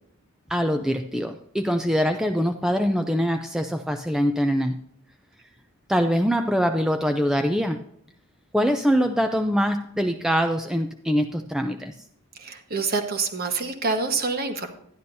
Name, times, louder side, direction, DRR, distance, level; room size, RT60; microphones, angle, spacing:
voice 1, 0.5-4.7 5.9-7.8 8.5-11.9, equal, ahead, 5 dB, 0.4 m, -23 dB
voice 2, 12.3-14.7, right 4 dB, 45° right, 5 dB, 1.3 m, -27 dB
12.0 x 10.5 x 2.7 m, 0.68 s
head